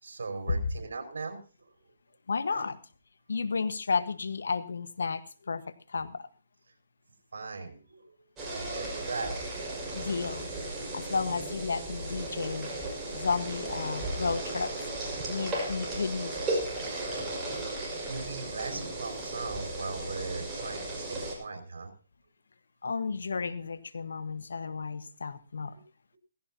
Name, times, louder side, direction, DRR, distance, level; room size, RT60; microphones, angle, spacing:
voice 1, 0.0-1.7 2.5-2.6 7.3-8.3 8.5-9.4 18.0-21.9 25.7-25.8, right 3 dB, 70° right, 4 dB, 5.4 m, -39 dB
voice 2, 2.3-2.8 3.3-6.3 9.9-10.5 10.9-12.7 13.1-14.7 15.3-16.5 22.8-25.7, left 5 dB, 75° left, 13 dB, 1.3 m, -32 dB
sound 1, 8.4-21.4, right 2 dB, 20° right, 5.3 m, -35 dB
18.0 x 15.5 x 2.8 m, 0.36 s
hypercardioid pair, 145°, 0 cm